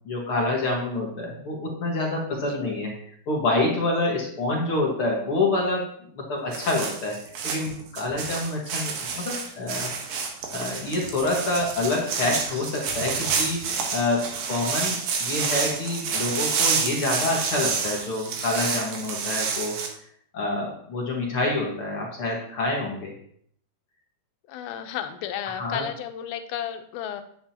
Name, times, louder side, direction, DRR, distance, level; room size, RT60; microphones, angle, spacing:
voice 1, 0.1-2.9 3.3-5.9 6.1-7.2 7.4-9.9 10.5-19.8 20.3-23.1 25.5-25.8, left 2 dB, 50° left, -2 dB, 1.9 m, -27 dB
sound 1, 6.5-19.9, right 5 dB, 80° right, 3.0 m, -29 dB
voice 2, 24.5-27.2, left 10 dB, 90° left, 8 dB, 2.6 m, -33 dB
9.7 x 8.8 x 2.9 m, 0.65 s
omnidirectional pair, 4.2 m